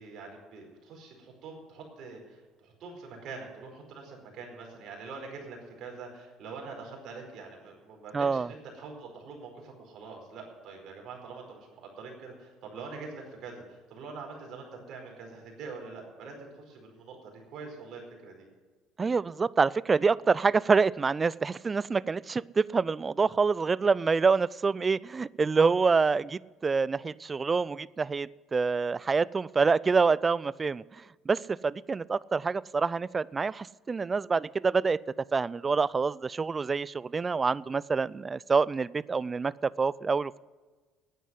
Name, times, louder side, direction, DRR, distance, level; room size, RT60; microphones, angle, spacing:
voice 1, 0.0-16.3 16.6-18.5, right 4 dB, 60° right, 0 dB, 4.7 m, -44 dB
voice 2, 8.1-8.5 19.0-30.8 31.3-35.0 35.3-40.4, right 4 dB, 30° right, 22 dB, 0.4 m, -26 dB
10.5 x 9.2 x 9.8 m, 1.4 s
hypercardioid pair, 70°, 0 cm